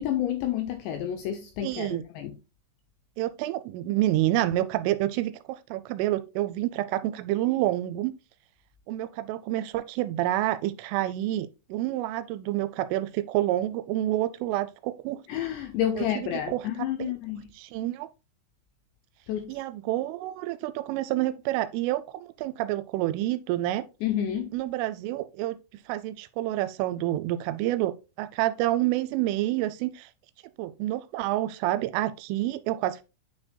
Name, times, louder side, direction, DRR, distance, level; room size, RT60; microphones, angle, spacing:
voice 1, 0.0-2.4 15.3-17.4 19.3-19.6 24.0-24.5, left 10 dB, 85° left, 2.5 m, -30 dB
voice 2, 1.6-2.0 3.2-8.1 8.9-15.2 16.0-16.6 17.0-17.1 17.6-18.1 19.5-23.8 24.5-25.6 25.9-30.1 30.6-33.0, right 15 dB, 85° right, 3.0 m, -28 dB
9.0 x 6.2 x 2.2 m
omnidirectional pair, 5.7 m